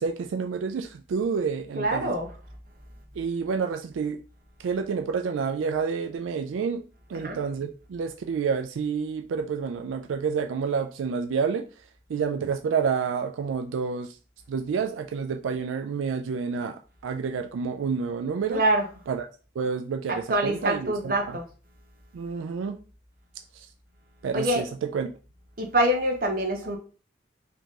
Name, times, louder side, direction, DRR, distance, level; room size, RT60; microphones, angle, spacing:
voice 1, 0.0-2.1 3.2-4.2 4.6-6.8 7.1-11.6 12.1-14.1 14.5-16.8 17.0-18.6 19.1-19.3 19.6-21.4 22.1-22.8 23.6-23.7 24.2-25.1, right 6 dB, 90° right, 0.3 m, -29 dB
voice 2, 1.7-2.3 7.1-7.4 18.5-18.9 20.1-21.4 24.3-24.6 25.6-26.8, right 1 dB, 45° right, 0.9 m, -25 dB
3.7 x 2.9 x 3.6 m
head